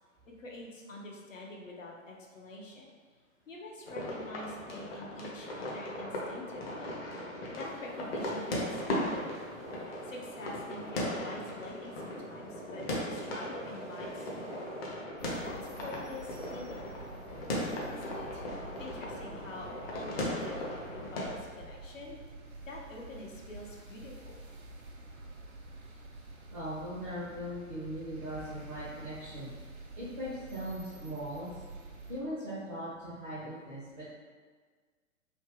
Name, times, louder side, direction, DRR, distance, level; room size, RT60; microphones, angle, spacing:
voice 1, 0.3-2.9 3.5-7.0 7.6-9.4 10.0-14.7 15.4-16.9 17.9-18.5 18.8-22.2 22.7-24.4, left 2 dB, 65° left, -1 dB, 0.9 m, -46 dB
sound 1, 3.8-21.4, left 1 dB, 45° left, 0.9 m, -38 dB
sound 2, 7.6-15.1, right 4 dB, 60° right, 0.5 m, -51 dB
sound 3, 15.2-32.2, right 2 dB, 80° right, 0.8 m, -48 dB
voice 2, 26.5-29.5 30.0-31.5 32.1-34.1, equal, 10° right, -11 dB, 0.4 m, -39 dB
3.1 x 2.8 x 3.3 m, 1.5 s
figure-of-eight pair, 115°, 41 cm